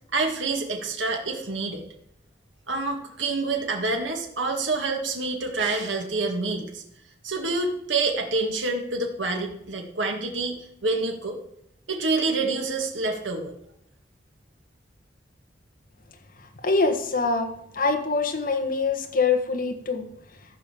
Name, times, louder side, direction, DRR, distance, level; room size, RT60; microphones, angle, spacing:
voice 1, 0.1-1.9 2.7-6.8 7.2-11.4 11.9-13.5, right 3 dB, 85° right, 2 dB, 2.0 m, -27 dB
voice 2, 16.6-20.1, left 4 dB, 50° left, 4 dB, 1.5 m, -24 dB
14.5 x 5.3 x 6.9 m, 0.76 s
head